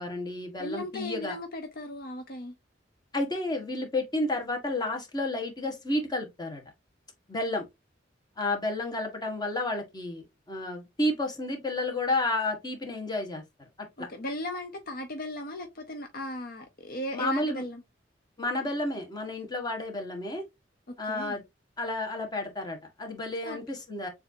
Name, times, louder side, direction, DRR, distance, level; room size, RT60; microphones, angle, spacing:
voice 1, 0.0-1.4 3.1-6.6 7.3-7.6 8.4-13.4 14.0-14.1 17.1-17.6 18.4-20.4 21.0-21.4 21.8-24.1, left 2 dB, 20° left, 1.5 m, -31 dB
voice 2, 0.6-2.6 14.0-17.8 20.9-21.4 23.4-23.6, left 1 dB, 55° left, 0.8 m, -37 dB
7.1 x 2.7 x 2.7 m
head